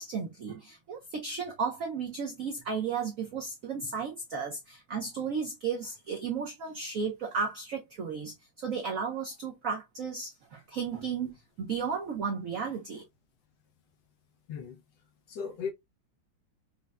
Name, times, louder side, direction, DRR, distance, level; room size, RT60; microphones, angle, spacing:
voice 1, 0.0-13.0, right 5 dB, 85° right, 0.7 m, -34 dB
voice 2, 14.5-14.8 15.3-15.7, left 6 dB, 70° left, 1.1 m, -37 dB
5.4 x 2.1 x 2.2 m
omnidirectional pair, 2.3 m